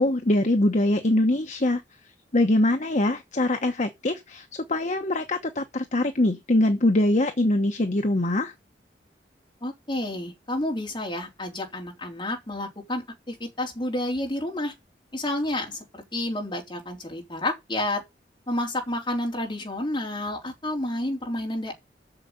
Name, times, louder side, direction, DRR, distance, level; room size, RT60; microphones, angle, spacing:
voice 1, 0.0-1.8 2.3-8.5, left 1 dB, 45° left, 1.1 m, -23 dB
voice 2, 9.6-14.7 15.1-18.0 18.5-21.7, left 1 dB, 25° left, 3.7 m, -30 dB
8.0 x 6.7 x 8.1 m
head